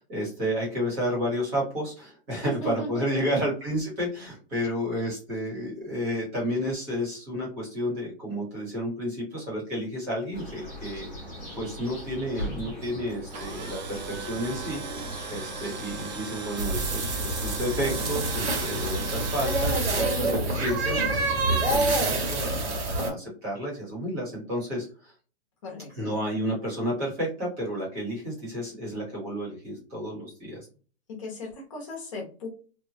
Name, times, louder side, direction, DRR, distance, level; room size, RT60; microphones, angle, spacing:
voice 1, 0.0-11.1 11.5-25.1 25.9-30.7, equal, 15° right, -5 dB, 1.1 m, -31 dB
voice 2, 2.3-3.4 25.6-26.1 31.1-32.5, equal, 30° left, -3 dB, 1.0 m, -36 dB
sound 1, 10.3-21.8, right 1 dB, 5° left, 1.1 m, -38 dB
Tools, 13.1-19.8, right 5 dB, 45° right, 0.5 m, -38 dB
sound 2, 16.6-23.1, right 2 dB, 70° right, 1.3 m, -27 dB
3.0 x 2.3 x 2.7 m, 0.39 s
hypercardioid pair, 175°, 33 cm